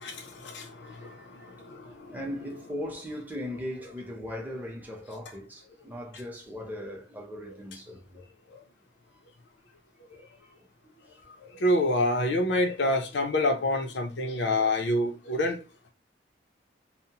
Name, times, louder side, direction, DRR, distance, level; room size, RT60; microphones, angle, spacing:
voice 1, 0.8-8.2 9.1-9.2 10.1-10.3 10.6-10.7 10.9-11.1, left 1 dB, 10° right, 0.6 m, -39 dB
voice 2, 11.6-15.6, left 1 dB, 70° left, 0.5 m, -26 dB
2.8 x 2.0 x 2.8 m
head